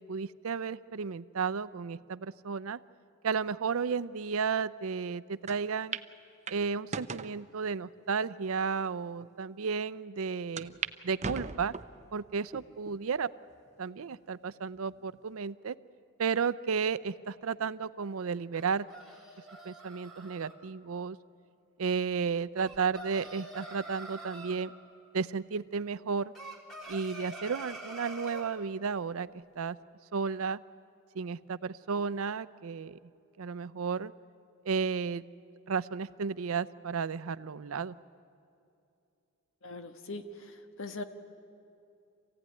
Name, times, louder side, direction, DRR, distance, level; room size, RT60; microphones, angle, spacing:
voice 1, 0.0-2.8 3.2-6.0 6.5-10.7 11.0-11.7 12.1-13.3 13.8-15.8 16.2-18.9 19.6-21.2 21.8-24.7 25.1-26.3 26.9-29.3 29.6-29.8 30.1-30.6 31.1-33.0 33.4-34.1 34.7-35.2 35.7-38.0, right 5 dB, 75° right, 17 dB, 0.5 m, -33 dB
sound 1, 5.5-5.6 5.9-6.1 6.5-7.3 8.0-8.1 8.8-8.9 9.2-9.3 10.6-10.9 11.2-12.0 12.5-13.0 13.5-13.6 14.7-15.2, right 5 dB, 35° right, 0.7 m, -38 dB
sound 2, 18.5-20.5 22.6-24.6 26.3-28.5, right 2 dB, ahead, 3.1 m, -45 dB
voice 2, 39.6-41.0, left 2 dB, 65° left, 8 dB, 1.4 m, -41 dB
26.5 x 16.0 x 9.7 m, 2.6 s
head